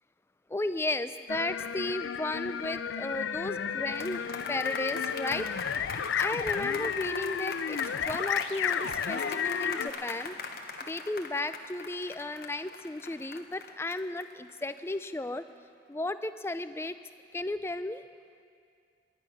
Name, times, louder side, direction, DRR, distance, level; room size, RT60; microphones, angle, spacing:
voice 1, 0.5-4.2 4.5-5.5 6.1-7.8 8.0-10.4 10.9-15.4 15.9-17.0 17.3-18.0, left 2 dB, 15° left, 11 dB, 0.4 m, -34 dB
sound 1, 1.3-9.9, left 7 dB, 90° left, 0.4 m, -33 dB
sound 2, 3.9-15.3, left 4 dB, 55° left, 1.1 m, -40 dB
19.5 x 10.5 x 5.9 m, 2.3 s
head